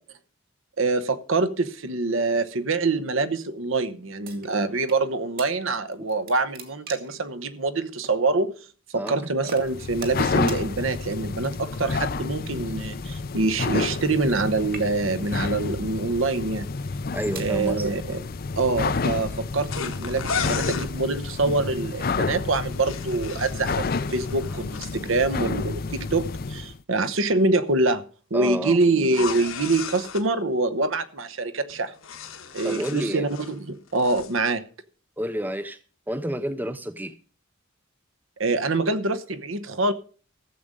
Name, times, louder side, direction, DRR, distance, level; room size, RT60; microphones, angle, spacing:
voice 1, 0.8-8.5 8.9-16.7 17.4-18.2 18.6-28.0 28.3-31.9 32.5-34.6 38.4-39.9, right 3 dB, 70° right, 1.0 m, -25 dB
sound 1, 4.2-5.0 5.4-5.5 5.9-7.2 8.0-8.2 9.0-9.2 9.5-10.2 10.5-10.6 11.4-11.8 12.8-14.4 14.6-15.2 15.9-16.2 16.9-17.5, right 5 dB, 45° right, 2.1 m, -42 dB
sound 2, 9.6-26.8, left 4 dB, 45° left, 0.5 m, -30 dB
voice 2, 17.1-17.9 25.4-25.5 28.3-28.8 32.6-33.3 35.2-35.8 36.1-37.2, right 1 dB, 10° right, 0.5 m, -29 dB
sound 3, 19.7-20.9 22.6-25.0 29.0-30.3 31.7-33.6 33.9-34.3, left 6 dB, 75° left, 1.3 m, -34 dB
14.5 x 7.5 x 5.2 m
head